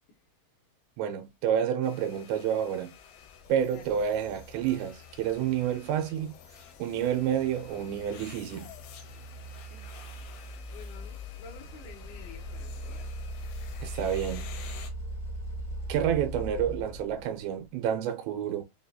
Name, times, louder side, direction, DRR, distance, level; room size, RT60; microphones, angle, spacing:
voice 1, 1.0-2.9 3.5-8.7 13.8-14.5 15.9-18.6, right 9 dB, 90° right, 3.0 m, -29 dB
sound 1, 1.8-14.9, left 8 dB, 90° left, 2.9 m, -51 dB
sound 2, 3.2-17.7, equal, 50° left, 0.9 m, -41 dB
voice 2, 3.7-4.0 9.7-10.1 10.6-13.2, left 4 dB, 75° left, 2.6 m, -51 dB
6.5 x 2.4 x 2.7 m
omnidirectional pair, 5.0 m